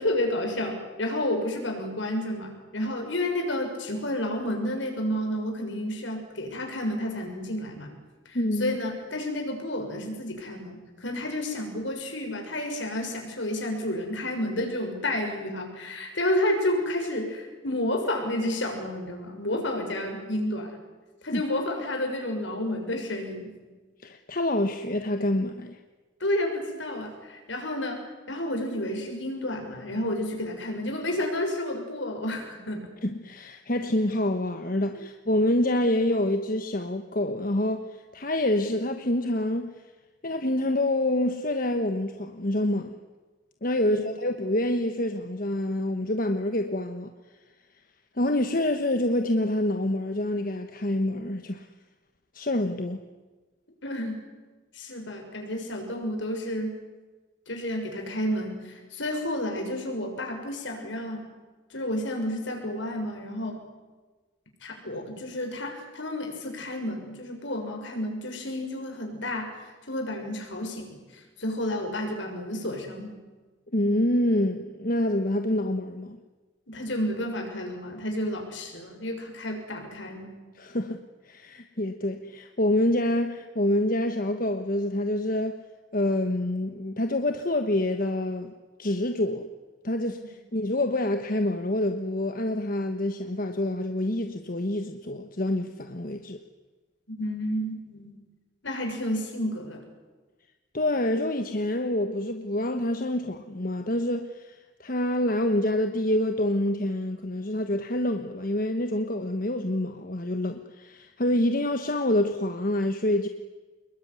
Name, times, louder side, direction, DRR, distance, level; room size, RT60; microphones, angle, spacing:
voice 1, 0.0-7.9 8.2-20.8 21.2-23.5 26.2-28.0 28.3-32.9 35.0-35.1 43.8-44.1 53.8-54.2 54.7-56.8 57.5-61.3 61.7-63.6 64.6-73.2 76.7-80.3 97.1-98.2 98.6-99.8, left 1 dB, 70° left, 6.5 m, -31 dB
voice 2, 8.3-8.8 21.3-21.4 24.0-25.8 33.0-39.7 40.2-43.0 43.6-47.1 48.2-51.7 52.3-53.0 73.7-76.2 80.6-85.6 85.9-88.5 88.8-89.5 89.8-96.4 100.7-113.3, left 1 dB, 45° left, 1.3 m, -27 dB
27.0 x 21.5 x 9.8 m
head